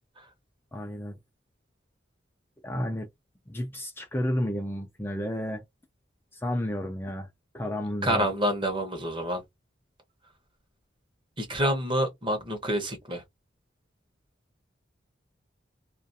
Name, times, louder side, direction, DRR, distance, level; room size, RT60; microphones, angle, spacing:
voice 1, 0.7-1.2 2.6-3.1 3.5-5.6 6.3-7.3 7.5-8.3, left 1 dB, 10° left, 0.4 m, -31 dB
voice 2, 8.0-9.4 11.4-13.2, equal, 25° right, 0.8 m, -27 dB
2.4 x 2.3 x 2.6 m
head